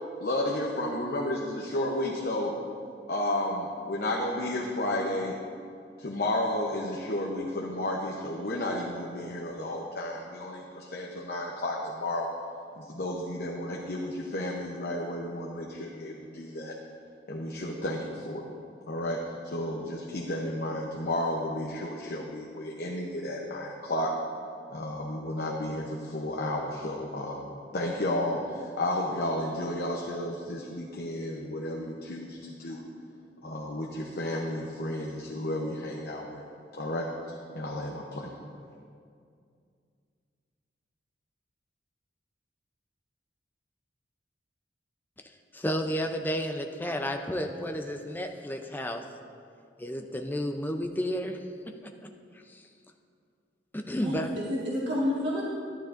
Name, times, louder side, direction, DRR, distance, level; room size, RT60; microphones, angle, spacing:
voice 1, 0.2-2.5 3.1-5.3 6.0-12.3 12.8-16.7 17.3-18.4 18.9-24.1 24.7-32.8 33.4-36.4 36.7-37.1 37.5-38.3, left 1 dB, 55° left, -2 dB, 0.8 m, -32 dB
voice 2, 45.5-49.0 49.8-51.4 52.5-52.6 53.7-54.3, equal, 10° left, 4 dB, 0.5 m, -31 dB
voice 3, 53.9-55.4, left 1 dB, 80° right, -6 dB, 1.6 m, -30 dB
12.0 x 11.0 x 2.6 m, 2.3 s
head